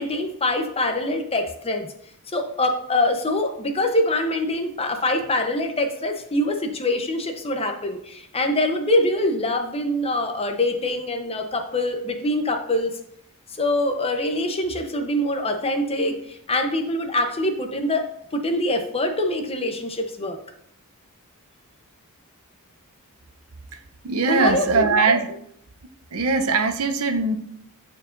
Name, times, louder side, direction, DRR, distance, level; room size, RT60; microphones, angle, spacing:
voice 1, 0.0-1.9 2.3-12.9 13.6-18.1 18.3-20.4 24.3-24.8, left 1 dB, 25° left, 5 dB, 0.8 m, -24 dB
voice 2, 24.0-25.4 26.1-27.4, right 4 dB, 70° right, 7 dB, 0.7 m, -21 dB
14.0 x 4.7 x 2.6 m, 0.70 s
head